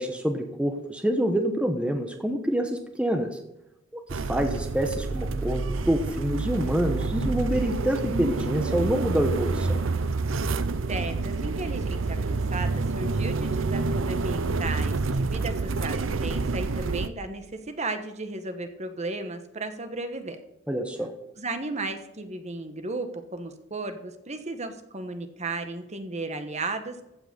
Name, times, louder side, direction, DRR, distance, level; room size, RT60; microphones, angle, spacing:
voice 1, 0.0-3.3 4.3-9.8 20.7-21.1, equal, 5° right, 4 dB, 1.0 m, -26 dB
sound 1, 4.1-17.1, right 3 dB, 85° right, 0.7 m, -28 dB
voice 2, 10.9-20.4 21.4-27.0, right 2 dB, 35° right, 8 dB, 1.3 m, -35 dB
15.0 x 6.0 x 6.7 m, 0.88 s
head